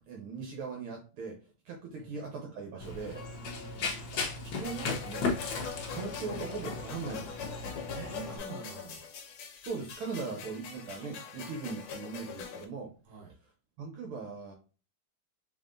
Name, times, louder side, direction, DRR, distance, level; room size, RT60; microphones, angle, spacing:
voice 1, 0.1-1.4 1.7-3.2 4.6-5.3 5.9-7.4 9.7-12.9 13.8-14.5, right 4 dB, 75° right, 0 dB, 1.8 m, -39 dB
Run, 2.8-8.4, left 4 dB, 60° left, 1.3 m, -36 dB
Piano, 3.1-6.1 6.7-6.8 7.5-7.7, left 3 dB, 15° left, 1.7 m, -55 dB
voice 2, 3.4-4.0 7.9-9.2 13.1-13.3, right 4 dB, 55° right, -1 dB, 1.2 m, -46 dB
sound 1, 4.6-12.6, left 6 dB, 80° left, 1.7 m, -43 dB
4.2 x 3.7 x 2.5 m, 0.34 s
omnidirectional pair, 2.4 m